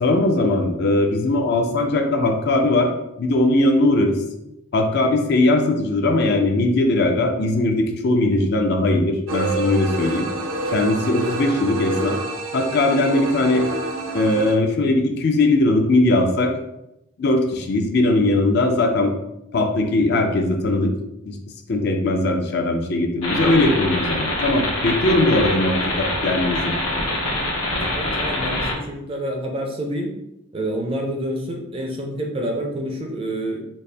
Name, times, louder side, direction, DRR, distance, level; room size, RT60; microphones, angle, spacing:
voice 1, 0.0-2.9 3.2-4.2 4.7-10.3 10.7-12.2 12.5-13.7 14.1-16.5 17.2-19.1 19.5-20.9 21.2-21.4 21.7-26.7, left 2 dB, 50° left, 3 dB, 0.4 m, -19 dB
sound 1, 9.3-14.6, right 2 dB, 70° right, 0.6 m, -28 dB
sound 2, 23.2-28.7, left 1 dB, 85° left, 0.9 m, -24 dB
voice 2, 27.8-30.1 30.5-33.6, right 1 dB, 25° right, 1 dB, 0.5 m, -28 dB
4.1 x 2.0 x 3.3 m, 0.85 s
head